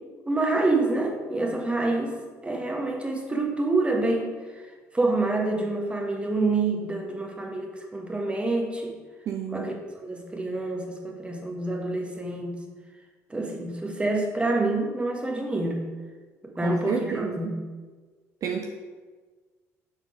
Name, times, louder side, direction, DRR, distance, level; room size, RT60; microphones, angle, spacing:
voice 1, 0.2-2.2 2.4-4.6 4.9-8.9 9.5-12.6 13.3-15.8 16.6-17.6, right 2 dB, 15° right, 1 dB, 1.3 m, -27 dB
voice 2, 9.3-9.7 16.6-17.6 18.4-18.7, right 7 dB, 45° right, 3 dB, 0.5 m, -30 dB
7.1 x 4.0 x 4.8 m, 1.4 s
figure-of-eight pair, 50°, 8 cm